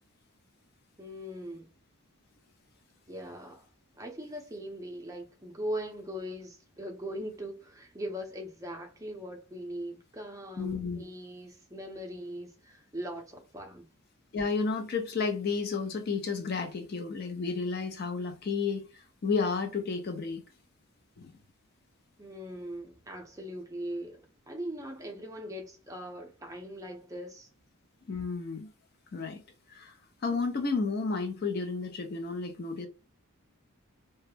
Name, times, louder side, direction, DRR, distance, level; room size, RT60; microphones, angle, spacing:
voice 1, 1.0-1.7 3.1-3.7 3.9-13.9 22.2-27.5, equal, 15° right, 0.5 m, -40 dB
voice 2, 10.6-11.0 14.3-20.4 21.2-21.3 28.1-28.7 29.1-29.4 29.7-29.9 30.2-32.9, left 4 dB, 45° left, 0.4 m, -32 dB
2.2 x 2.0 x 3.1 m
head